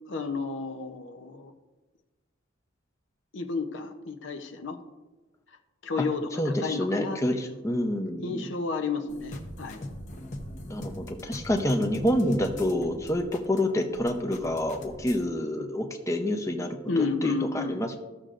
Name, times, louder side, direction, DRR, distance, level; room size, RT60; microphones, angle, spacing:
voice 1, 0.1-1.5 3.3-4.8 5.8-7.6 8.2-9.8 15.6-15.7 16.9-17.8, left 4 dB, 65° left, 5 dB, 0.7 m, -31 dB
voice 2, 6.4-8.4 10.7-18.0, left 1 dB, 15° left, 3 dB, 0.6 m, -28 dB
sound 1, 9.1-15.3, left 1 dB, 40° left, 0.9 m, -41 dB
14.5 x 6.5 x 2.5 m, 1.2 s
head